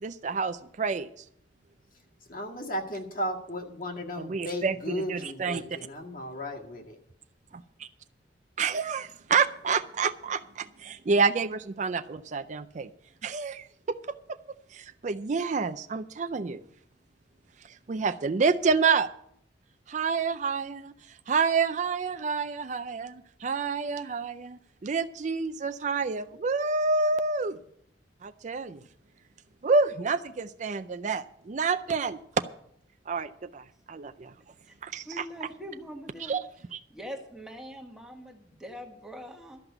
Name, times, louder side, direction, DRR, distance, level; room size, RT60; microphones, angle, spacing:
voice 1, 0.0-1.1 4.2-5.6 7.5-7.9 8.6-12.9 13.2-14.0 14.7-16.6 17.9-19.1 19.9-20.9 21.3-27.6 28.2-28.8 29.6-32.2 33.1-34.3 34.8-35.5 36.2-36.4 36.7-36.8, right 4 dB, 40° right, 11 dB, 0.4 m, -28 dB
voice 2, 2.3-7.0, equal, 50° left, 1 dB, 1.9 m, -35 dB
voice 3, 35.0-36.4 36.9-39.6, equal, 5° right, 2 dB, 1.5 m, -42 dB
13.0 x 5.9 x 9.0 m, 0.71 s
head